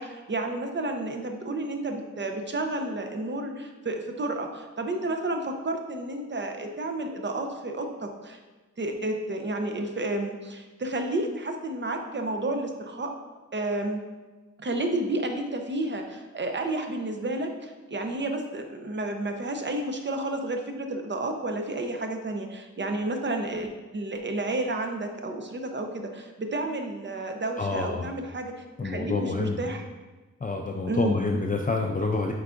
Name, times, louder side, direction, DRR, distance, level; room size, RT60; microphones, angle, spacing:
voice 1, 0.0-8.4 8.8-13.1 13.5-14.0 14.6-28.5 28.8-29.8 30.9-31.2, right 2 dB, 40° right, 4 dB, 0.7 m, -31 dB
voice 2, 27.6-28.1 28.8-29.7 30.4-32.3, left 3 dB, 30° left, 1 dB, 0.4 m, -27 dB
8.1 x 4.6 x 2.5 m, 1.2 s
wide cardioid pair, 110°, 31 cm